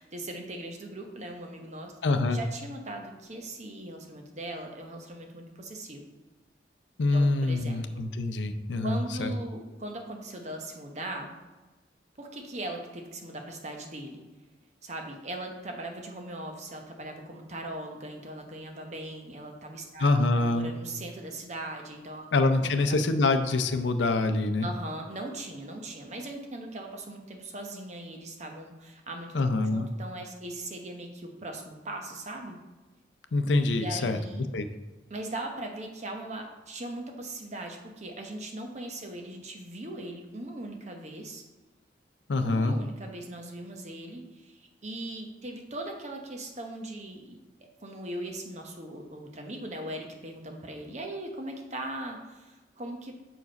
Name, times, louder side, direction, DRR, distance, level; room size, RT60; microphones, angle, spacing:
voice 1, 0.0-1.9 2.3-6.0 7.1-8.0 8.8-11.3 12.2-14.2 14.8-22.2 22.6-23.0 24.6-32.6 33.7-34.5 35.1-41.4 42.4-53.1, right 1 dB, 40° right, 3 dB, 1.0 m, -39 dB
voice 2, 2.0-2.4 7.0-9.3 20.0-20.7 22.3-24.7 29.3-29.9 33.3-34.2 34.5-34.7 42.3-42.7, left 2 dB, 85° left, 9 dB, 0.6 m, -25 dB
6.0 x 4.8 x 5.2 m, 1.2 s
head